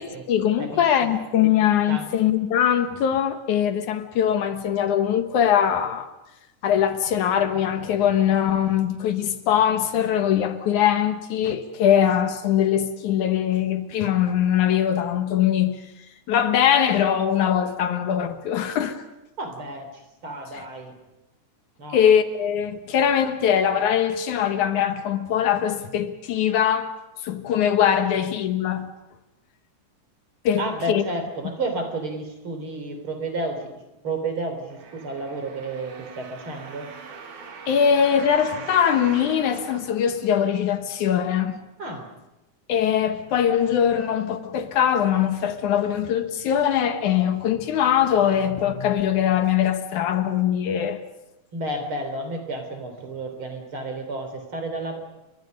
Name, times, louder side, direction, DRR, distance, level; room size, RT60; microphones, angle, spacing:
voice 1, 0.0-6.1 6.6-15.8 16.3-19.0 21.9-26.9 27.2-28.9 30.4-31.0 37.7-41.6 42.7-51.0, left 9 dB, 75° left, 2.7 m, -22 dB
voice 2, 0.6-1.1 1.9-2.1 19.4-20.9 21.8-22.0 30.6-33.7 34.0-36.9 41.8-42.0 51.5-55.0, right 2 dB, 40° right, 4.1 m, -31 dB
sound 1, 34.7-40.6 41.2-41.3, right 5 dB, 70° right, 3.7 m, -41 dB
30.0 x 24.5 x 5.4 m
omnidirectional pair, 3.6 m